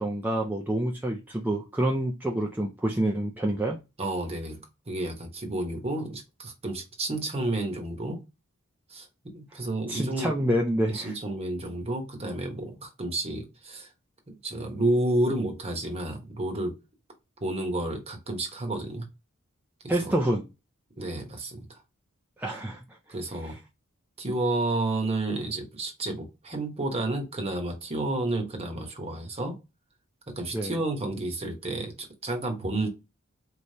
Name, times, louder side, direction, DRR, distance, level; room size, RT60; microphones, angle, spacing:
voice 1, 0.0-3.8 9.9-11.1 19.9-20.5 22.4-22.8 23.4-23.6 30.5-30.7, right 1 dB, 10° right, 0.4 m, -27 dB
voice 2, 4.0-8.2 8.9-10.4 10.9-13.9 14.3-16.7 17.4-19.1 19.8-20.1 21.0-21.8 23.1-23.6 24.2-29.6 30.3-32.9, right 2 dB, 30° right, 1.0 m, -31 dB
4.2 x 3.3 x 2.7 m
head